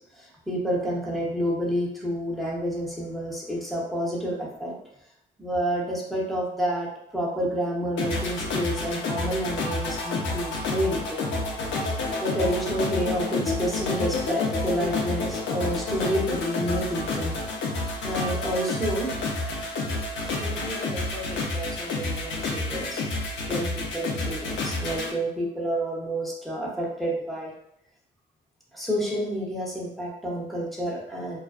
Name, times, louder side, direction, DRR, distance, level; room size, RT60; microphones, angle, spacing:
voice 1, 0.1-4.7 5.4-6.9 7.1-11.3 11.7-17.3 18.0-19.2 20.3-23.0 23.5-27.5 28.7-31.4, equal, ahead, -4 dB, 0.8 m, -29 dB
sound 1, 8.0-25.1, left 3 dB, 70° left, 0.6 m, -29 dB
2.4 x 2.2 x 2.4 m, 0.75 s
cardioid pair, 90°, 20 cm